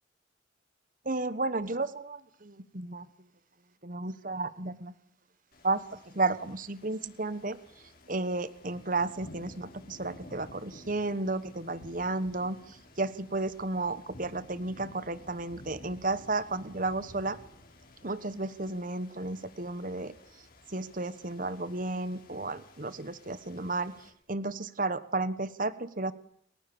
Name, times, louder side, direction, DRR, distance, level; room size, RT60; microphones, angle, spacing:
voice 1, 1.0-3.1 3.8-4.9 5.6-7.6 8.1-17.4 18.0-20.1 20.7-26.1, right 2 dB, 45° right, 14 dB, 1.3 m, -33 dB
sound 1, 5.5-24.1, left 1 dB, 50° left, 7.3 m, -53 dB
29.0 x 25.0 x 7.1 m, 0.67 s
head